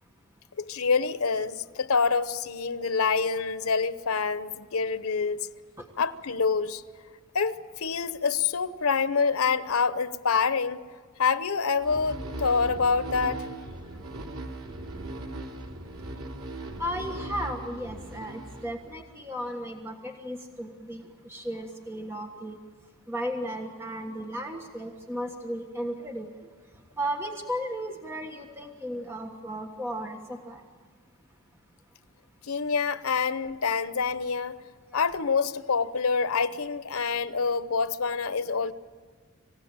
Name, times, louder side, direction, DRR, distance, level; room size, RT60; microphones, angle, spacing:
voice 1, 0.6-5.5 6.0-6.8 7.3-10.8 11.2-13.5 32.4-34.5 34.9-38.7, left 5 dB, 85° left, 0.9 m, -26 dB
sound 1, 11.8-19.2, right 2 dB, 80° right, 2.7 m, -39 dB
voice 2, 16.8-22.6 23.1-26.3 27.0-30.6 34.9-35.0, equal, 10° right, 1.4 m, -35 dB
27.0 x 16.0 x 8.9 m
head